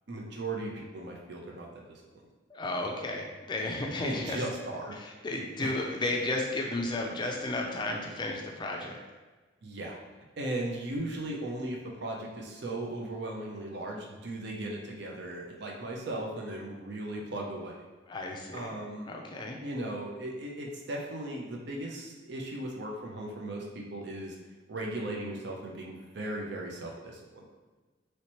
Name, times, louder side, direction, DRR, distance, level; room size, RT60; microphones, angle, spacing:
voice 1, 0.1-2.0 4.0-4.9 5.6-5.7 9.6-10.0 10.4-17.8 18.5-19.1 19.6-24.4 24.7-27.5, right 1 dB, 60° right, 0 dB, 0.6 m, -37 dB
voice 2, 2.5-4.4 4.9-9.0 18.1-18.7 19.1-19.6, left 2 dB, 25° left, 1 dB, 0.4 m, -33 dB
3.1 x 2.8 x 3.0 m, 1.3 s
head